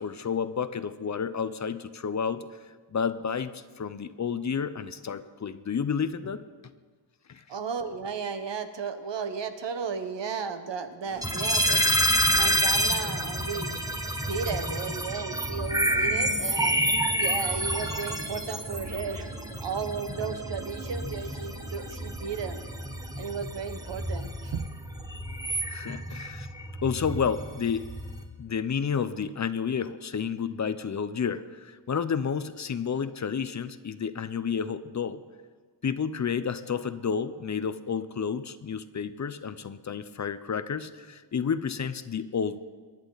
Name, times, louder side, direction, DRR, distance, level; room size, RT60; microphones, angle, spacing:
voice 1, 0.0-2.5 2.9-6.4 7.3-7.4 25.7-26.5 26.8-27.9 28.4-35.2 35.8-42.6, left 6 dB, 40° left, 13 dB, 0.7 m, -30 dB
voice 2, 7.5-11.9 12.3-13.8 14.2-16.7 17.2-19.3 19.6-22.6 23.2-24.7, right 5 dB, 70° right, 8 dB, 1.2 m, -34 dB
sound 1, 11.0-27.0, right 3 dB, 50° right, 2.5 m, -46 dB
sound 2, 11.2-28.2, right 1 dB, 10° right, 1.2 m, -29 dB
24.0 x 10.5 x 4.0 m, 1.5 s
wide cardioid pair, 105°, 45 cm